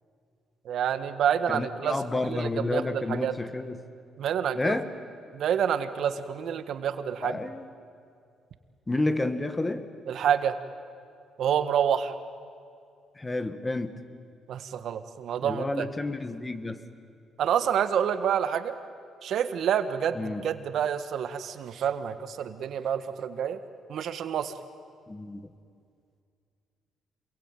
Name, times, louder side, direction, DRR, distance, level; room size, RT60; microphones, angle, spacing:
voice 1, 0.6-2.0 2.2-3.4 4.2-4.7 5.3-7.4 10.1-10.6 11.4-12.1 14.5-15.9 17.4-18.7 19.2-23.6 23.9-24.5, right 8 dB, 70° right, 10 dB, 1.5 m, -28 dB
voice 2, 1.5-3.8 4.6-4.9 7.2-7.7 8.9-9.9 13.2-14.0 15.4-16.8 20.1-20.5 25.1-25.4, left 2 dB, 20° left, 10 dB, 1.8 m, -30 dB
27.5 x 22.5 x 9.2 m, 2.3 s
cardioid pair, 90°, 0 cm